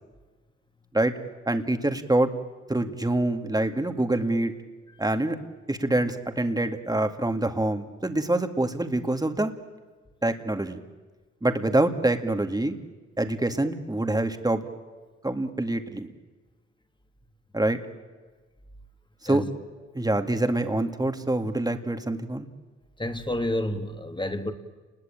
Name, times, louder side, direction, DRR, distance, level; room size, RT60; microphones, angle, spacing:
voice 1, 1.5-2.3 2.7-4.5 5.0-5.4 5.7-9.5 10.2-10.8 11.4-12.7 13.2-14.6 15.2-16.1 17.5-17.8 19.2-19.4 19.9-22.5, right 1 dB, 15° right, 7 dB, 2.3 m, -25 dB
voice 2, 23.0-24.5, left 1 dB, 15° left, 6 dB, 2.6 m, -29 dB
29.5 x 20.5 x 9.1 m, 1.3 s
cardioid pair, 70°, 29 cm